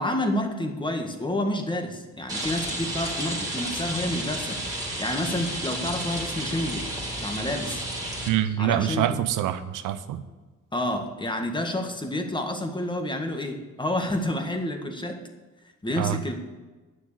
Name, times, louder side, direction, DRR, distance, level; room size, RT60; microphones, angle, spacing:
voice 1, 0.0-6.8 7.2-7.8 8.6-9.1 10.7-15.2 15.8-16.4, left 1 dB, 15° left, 4 dB, 1.7 m, -29 dB
Rain, 2.3-8.3, right 1 dB, 10° right, 3.2 m, -32 dB
voice 2, 8.3-10.2 16.0-16.2, right 11 dB, 85° right, 12 dB, 0.8 m, -25 dB
9.7 x 6.4 x 8.4 m, 1.2 s
cardioid pair, 90°, 30 cm